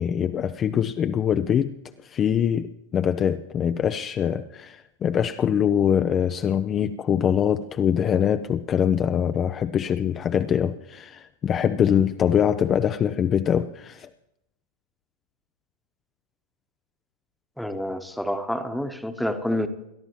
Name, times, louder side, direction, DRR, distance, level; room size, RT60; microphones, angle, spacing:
voice 1, 0.0-1.7 2.0-14.1, left 8 dB, 25° left, 10 dB, 0.5 m, -23 dB
voice 2, 17.6-19.7, left 1 dB, ahead, 9 dB, 1.1 m, -28 dB
29.0 x 13.0 x 3.1 m, 0.87 s
figure-of-eight pair, 90°, 0 cm